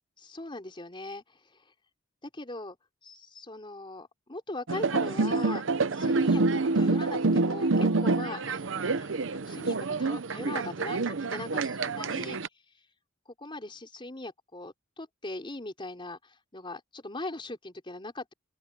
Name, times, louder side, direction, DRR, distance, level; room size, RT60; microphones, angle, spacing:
voice 1, 0.2-1.6 2.2-2.8 3.0-6.4 6.7-12.4 13.4-18.3, left 2 dB, 25° left, 4.1 m, -40 dB
sound 1, 4.7-12.5, right 3 dB, 75° right, 0.8 m, -27 dB
open air
head